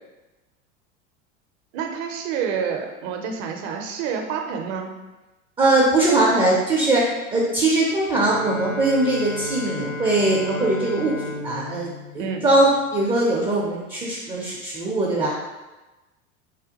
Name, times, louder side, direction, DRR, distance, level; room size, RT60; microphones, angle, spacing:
voice 1, 1.7-4.9 12.2-12.4, right 6 dB, 55° right, 4 dB, 0.6 m, -28 dB
voice 2, 5.6-7.0 7.3-15.4, right 2 dB, 15° right, -4 dB, 0.4 m, -21 dB
Bowed string instrument, 8.1-13.4, left 2 dB, 80° left, 0.6 m, -34 dB
3.4 x 2.2 x 2.8 m, 1.1 s
hypercardioid pair, 100°, 38 cm